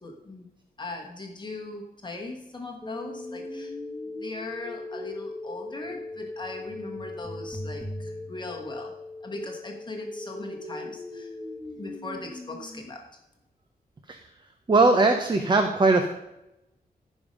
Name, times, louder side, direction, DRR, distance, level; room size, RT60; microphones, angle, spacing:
voice 1, 0.0-0.5 0.8-3.8 4.1-8.9 9.2-11.3 11.7-13.0, left 2 dB, 30° left, 1 dB, 1.4 m, -39 dB
sound 1, 2.8-12.8, left 2 dB, 10° right, 1.2 m, -38 dB
voice 2, 14.7-16.1, right 3 dB, 30° right, 6 dB, 0.8 m, -20 dB
15.0 x 5.5 x 5.3 m, 0.89 s
wide cardioid pair, 180°, 16 cm